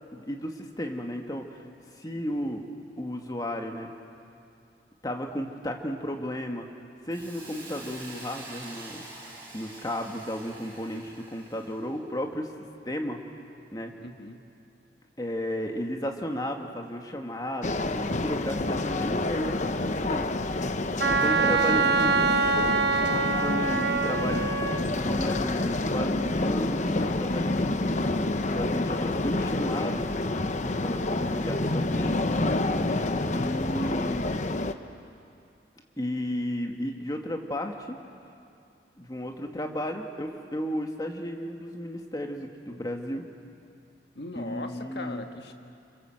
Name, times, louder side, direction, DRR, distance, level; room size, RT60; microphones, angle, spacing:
voice 1, 0.1-1.6 2.0-2.7 3.0-3.9 5.0-6.7 7.1-12.5 12.9-13.2 13.7-14.0 15.2-20.2 21.2-22.5 23.2-28.0 28.5-32.2 33.3-34.4 36.0-38.0 39.0-43.2 44.4-45.3, equal, 20° left, 3 dB, 2.0 m, -34 dB
Hiss, 7.1-11.8, right 2 dB, 15° right, 6.9 m, -45 dB
voice 2, 14.0-14.4 21.1-22.0 28.9-29.3 44.1-45.5, left 2 dB, 65° left, 5 dB, 1.7 m, -41 dB
sound 1, 17.6-34.7, left 2 dB, 40° left, 0.9 m, -28 dB
Wind instrument woodwind instrument, 21.0-24.9, right 4 dB, 65° right, 1.2 m, -25 dB
28.0 x 25.5 x 7.9 m, 2.5 s
head